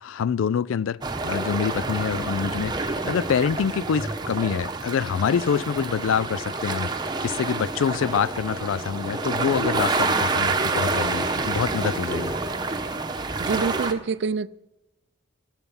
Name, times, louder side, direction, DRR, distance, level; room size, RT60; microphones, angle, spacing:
voice 1, 0.0-6.9 7.2-12.3, left 7 dB, 75° left, 0.4 m, -26 dB
sound 1, 1.0-13.9, right 3 dB, 20° right, 0.9 m, -28 dB
sound 2, 2.8-11.4, left 1 dB, 55° left, 6.3 m, -54 dB
voice 2, 13.4-14.5, right 5 dB, 55° right, 0.4 m, -26 dB
14.0 x 12.0 x 5.5 m
head